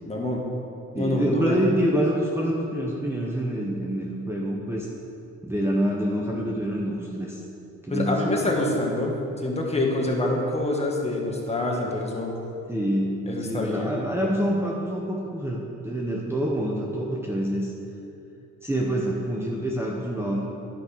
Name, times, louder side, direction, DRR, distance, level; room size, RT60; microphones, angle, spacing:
voice 1, 0.1-0.5 0.9-1.5 7.9-12.4 13.3-13.9, left 2 dB, 20° left, -1 dB, 1.7 m, -26 dB
voice 2, 1.0-4.9 5.4-7.4 7.8-8.3 12.7-17.7 18.6-20.4, equal, 10° right, -2 dB, 0.9 m, -26 dB
11.0 x 5.2 x 6.0 m, 2.8 s
cardioid pair, 90°, 30 cm